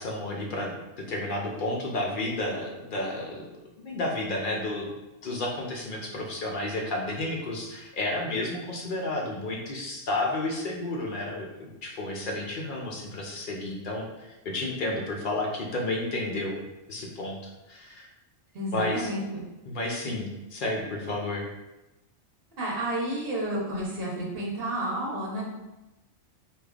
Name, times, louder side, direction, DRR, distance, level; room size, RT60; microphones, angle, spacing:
voice 1, 0.0-3.4 3.8-4.9 5.2-16.6 16.9-18.1 18.7-19.1 19.7-21.5, left 2 dB, 60° left, -1 dB, 0.5 m, -31 dB
voice 2, 18.5-19.2 22.6-25.4, right 1 dB, 50° right, -3 dB, 1.1 m, -30 dB
4.8 x 2.4 x 2.3 m, 1.0 s
omnidirectional pair, 1.4 m